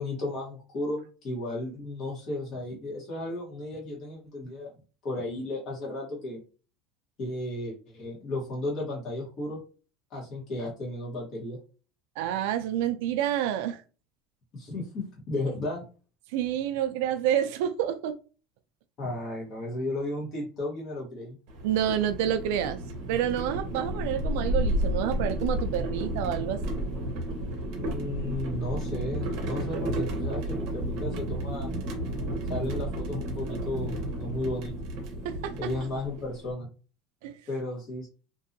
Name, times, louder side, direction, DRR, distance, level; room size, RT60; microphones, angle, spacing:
voice 1, 0.0-4.7 5.0-6.4 7.2-9.6 10.1-11.6 14.5-15.8 19.0-21.4 27.8-31.7 32.5-34.7 35.6-36.7 37.5-38.1, left 2 dB, 35° left, 1.1 m, -34 dB
voice 2, 12.2-13.8 16.3-18.1 21.6-22.8 23.1-26.8 35.2-35.7 37.2-37.4, right 10 dB, 70° right, 0.3 m, -28 dB
sound 1, 21.5-36.5, equal, 50° right, 0.8 m, -32 dB
2.6 x 2.3 x 2.6 m
cardioid pair, 170°, 0 cm